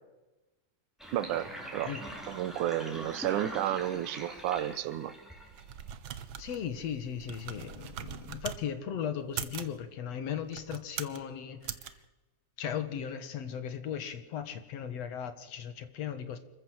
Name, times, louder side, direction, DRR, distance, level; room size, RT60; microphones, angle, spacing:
Sink (filling or washing), 1.0-5.9, right 1 dB, ahead, 4.4 m, -43 dB
voice 1, 1.1-1.9 2.3-5.1, right 12 dB, 90° right, 15 dB, 2.5 m, -32 dB
sound 1, 5.4-8.6 9.2-9.8 10.4-11.2 11.6-11.9, right 9 dB, 65° right, 1.3 m, -41 dB
voice 2, 6.4-12.0 12.6-16.4, left 8 dB, 60° left, 10 dB, 2.4 m, -37 dB
26.0 x 14.5 x 7.9 m, 1.1 s
omnidirectional pair, 3.5 m